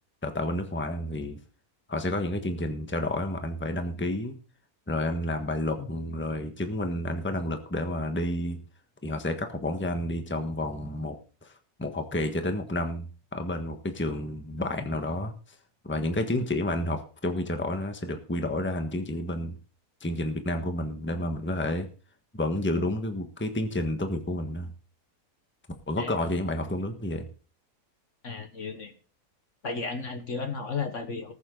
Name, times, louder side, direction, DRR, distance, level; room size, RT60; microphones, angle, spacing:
voice 1, 0.2-1.4 1.9-4.4 4.9-8.6 9.0-11.2 11.4-11.5 11.8-15.3 15.9-19.6 20.0-21.9 22.3-24.7 25.9-27.3, left 1 dB, 10° left, 6 dB, 1.4 m, -30 dB
voice 2, 28.2-28.9 29.6-31.3, left 4 dB, 50° left, 7 dB, 1.6 m, -34 dB
19.5 x 7.4 x 3.9 m, 0.38 s
omnidirectional pair, 1.7 m